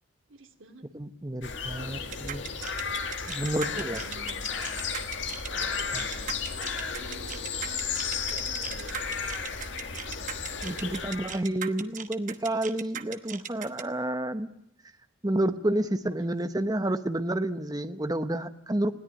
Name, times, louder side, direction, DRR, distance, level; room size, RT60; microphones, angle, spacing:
voice 1, 0.3-0.9 1.8-2.3 3.3-4.7 5.5-9.2 9.7-10.3 10.9-11.0 13.2-13.4 16.1-16.3, right 2 dB, 75° right, 5 dB, 2.5 m, -50 dB
voice 2, 0.9-2.4 3.3-4.0 5.9-6.0 10.6-14.5 15.2-18.9, right 1 dB, 20° right, 10 dB, 0.9 m, -30 dB
sound 1, 1.4-11.4, left 6 dB, 65° left, 2.0 m, -34 dB
sound 2, 2.1-13.8, right 8 dB, 40° right, 1.1 m, -38 dB
20.5 x 17.0 x 9.8 m, 0.74 s
head